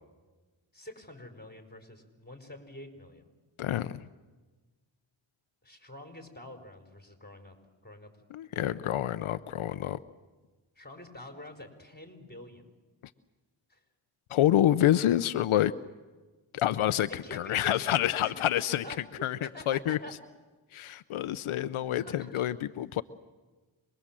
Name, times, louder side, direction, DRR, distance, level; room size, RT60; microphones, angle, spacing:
voice 1, 0.7-3.3 5.6-7.5 7.8-8.1 8.6-8.8 10.7-12.7 13.7-13.8 17.1-19.0 19.4-20.1 21.9-22.5, left 1 dB, 20° left, 6 dB, 4.9 m, -47 dB
voice 2, 3.6-4.0 8.3-10.0 14.3-15.7 16.5-18.8 19.2-20.0 20.7-23.0, left 12 dB, 90° left, 13 dB, 0.7 m, -27 dB
26.5 x 21.5 x 7.5 m, 1.3 s
cardioid pair, 55°, 48 cm